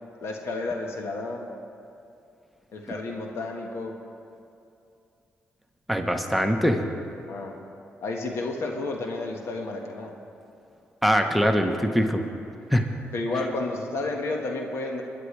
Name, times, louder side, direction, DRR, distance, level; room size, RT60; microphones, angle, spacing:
voice 1, 0.2-1.5 2.7-4.0 7.3-7.6 8.0-10.1 13.1-15.0, left 2 dB, 70° left, 2 dB, 1.6 m, -31 dB
voice 2, 5.9-6.8 11.0-12.2 12.7-12.9, equal, ahead, 5 dB, 1.1 m, -22 dB
20.5 x 10.5 x 3.4 m, 2.6 s
supercardioid pair, 60°, 5 cm